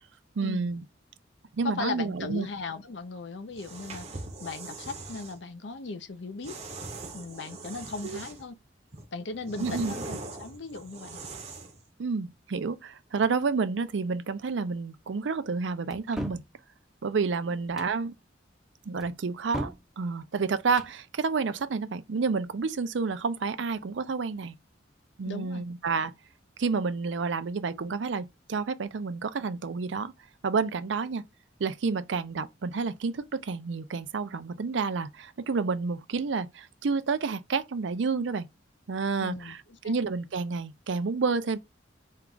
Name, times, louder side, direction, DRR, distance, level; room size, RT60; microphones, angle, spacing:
voice 1, 0.4-0.8 1.5-2.5 8.0-8.2 9.6-9.9 12.0-16.4 17.0-18.1 18.9-24.6 25.2-26.1 26.6-30.1 30.4-31.2 31.6-38.5 38.9-39.6 39.8-41.6, right 4 dB, 75° right, 0.5 m, -29 dB
voice 2, 1.6-6.6 7.1-8.6 9.1-11.2 25.2-25.6 39.2-40.0, left 3 dB, 70° left, 0.6 m, -37 dB
sound 1, 3.5-5.4 6.4-8.5 8.9-11.8, right 3 dB, 35° right, 0.7 m, -41 dB
sound 2, 15.9-16.5 17.6-18.0 19.0-19.9 20.6-21.0, equal, ahead, 0.5 m, -37 dB
4.5 x 2.3 x 3.8 m
head